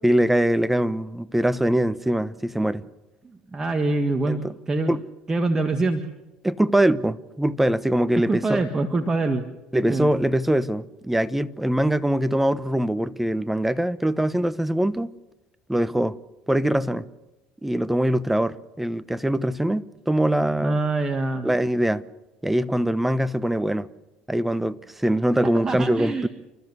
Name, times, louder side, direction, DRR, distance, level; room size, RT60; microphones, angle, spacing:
voice 1, 0.0-2.8 4.3-4.5 4.9-5.0 6.4-8.6 9.7-15.1 15.7-16.2 16.5-17.1 17.6-20.8 21.4-22.0 22.4-23.9 24.3-26.3, right 1 dB, 5° right, 1.0 m, -23 dB
voice 2, 3.5-4.9 5.3-6.1 8.3-9.5 9.9-10.1 20.6-21.5 25.4-26.3, right 2 dB, 20° right, 1.7 m, -25 dB
29.5 x 13.5 x 8.3 m
hypercardioid pair, 75°, 3 cm